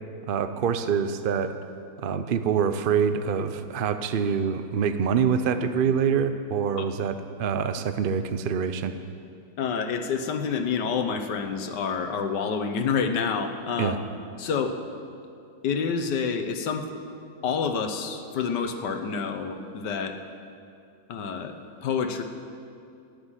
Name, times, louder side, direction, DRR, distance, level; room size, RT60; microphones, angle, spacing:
voice 1, 0.3-1.6 2.0-8.9 13.8-14.0, right 7 dB, 80° right, 9 dB, 0.4 m, -25 dB
voice 2, 9.6-14.0 14.4-14.8 15.6-16.9 17.4-20.2 21.1-21.6 21.8-22.2, left 6 dB, 70° left, 7 dB, 1.6 m, -28 dB
14.0 x 8.1 x 9.9 m, 2.5 s
omnidirectional pair, 1.9 m